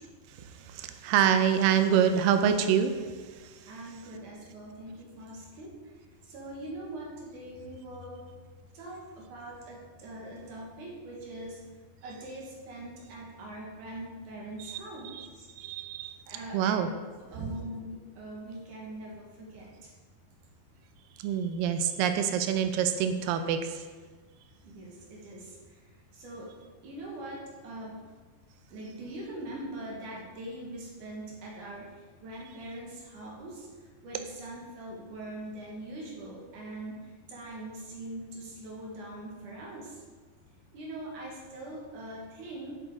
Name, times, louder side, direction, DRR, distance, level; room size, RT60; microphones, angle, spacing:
voice 1, 0.7-3.0 14.6-14.8 15.1-15.3 15.6-16.2 16.5-16.9 17.4-17.5 21.2-23.8, right 8 dB, 80° right, 8 dB, 2.0 m, -26 dB
voice 2, 3.6-5.8 6.2-8.3 8.7-11.6 12.0-15.5 16.3-16.8 17.2-19.9 24.6-26.6 26.8-28.0 28.7-40.0 40.7-42.7, right 1 dB, 60° right, -3 dB, 2.8 m, -42 dB
10.5 x 7.8 x 3.7 m, 1.4 s
omnidirectional pair, 4.5 m